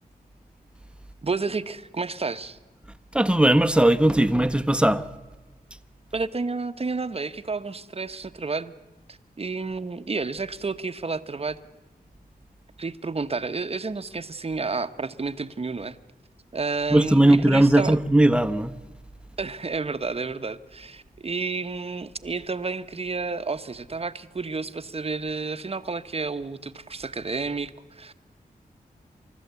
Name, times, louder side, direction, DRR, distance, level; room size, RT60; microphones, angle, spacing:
voice 1, 1.2-2.6 6.1-8.7 9.1-11.6 12.8-16.0 16.5-18.0 19.4-28.3, right 4 dB, 40° right, 1.0 m, -31 dB
voice 2, 3.1-5.0 16.9-18.7, right 1 dB, 5° right, 1.1 m, -18 dB
29.0 x 13.5 x 8.2 m
cardioid pair, 65°, 16 cm